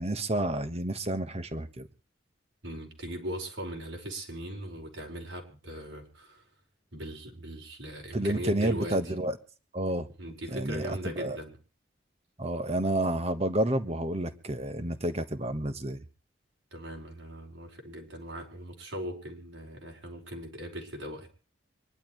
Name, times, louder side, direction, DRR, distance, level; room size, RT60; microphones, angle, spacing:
voice 1, 0.0-1.9 8.1-9.4 9.7-10.1 10.5-11.4 12.4-16.0, right 1 dB, 35° right, 1.4 m, -30 dB
voice 2, 2.6-6.4 6.9-9.1 10.2-11.5 16.7-21.3, equal, 85° right, 5.4 m, -39 dB
26.0 x 11.5 x 3.2 m
head